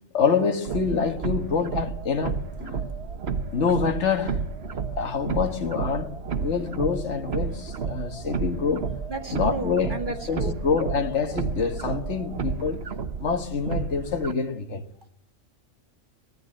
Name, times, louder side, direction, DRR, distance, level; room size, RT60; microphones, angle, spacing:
voice 1, 0.1-2.8 3.5-4.4 5.0-8.9 9.3-10.0 10.3-12.8 13.2-14.8, left 5 dB, 65° left, 1.7 m, -26 dB
sound 1, 0.6-14.3, right 5 dB, 55° right, 1.4 m, -31 dB
voice 2, 9.1-10.6, right 2 dB, 40° right, 2.3 m, -34 dB
24.0 x 17.5 x 7.6 m
omnidirectional pair, 1.3 m